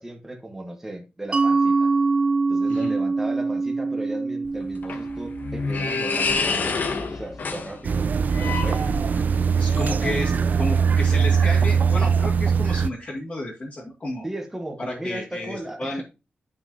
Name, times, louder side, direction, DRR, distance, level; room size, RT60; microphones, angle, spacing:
voice 1, 0.0-1.9 2.5-6.8 7.1-9.0 9.7-10.2 14.2-16.0, right 1 dB, 10° right, 1.3 m, -36 dB
Mallet percussion, 1.3-6.7, right 3 dB, 30° right, 0.7 m, -24 dB
sound 1, 4.5-9.4, left 4 dB, 55° left, 1.1 m, -28 dB
sound 2, 7.8-12.9, right 6 dB, 50° right, 0.4 m, -21 dB
voice 2, 9.6-10.3 10.6-14.3 14.8-16.0, left 1 dB, 35° left, 2.2 m, -32 dB
9.9 x 5.9 x 2.8 m
wide cardioid pair, 145°, 4 cm